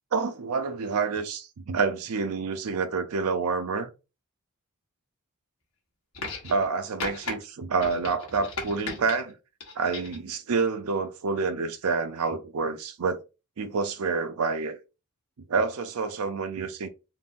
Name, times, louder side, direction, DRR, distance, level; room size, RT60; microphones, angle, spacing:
voice 1, 0.1-3.9 6.4-9.3 9.8-13.2 13.6-14.8 15.5-16.9, right 4 dB, 75° right, 0.5 m, -28 dB
sound 1, 6.1-6.7 7.0-7.3 7.8-9.2 9.6-10.2 11.3-11.4, left 3 dB, 70° left, 1.1 m, -36 dB
3.8 x 2.1 x 2.5 m
head